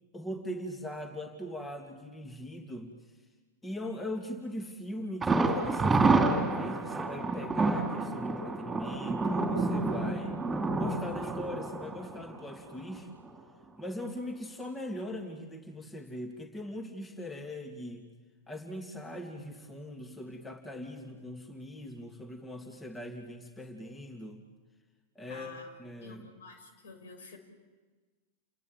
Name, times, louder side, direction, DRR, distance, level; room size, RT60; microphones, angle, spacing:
voice 1, 0.1-3.0 3.6-10.4 10.8-13.1 13.8-18.1 18.5-24.4 25.2-25.5 25.8-26.2, left 1 dB, 10° left, 4 dB, 2.5 m, -40 dB
Thunder, 5.2-13.0 13.3-13.4 13.8-13.9, right 3 dB, 15° right, 3.9 m, -29 dB
voice 2, 25.3-25.7 26.0-27.4, left 3 dB, 60° left, 7 dB, 5.4 m, -49 dB
30.0 x 19.5 x 8.9 m, 1.4 s
figure-of-eight pair, 90°, 0 cm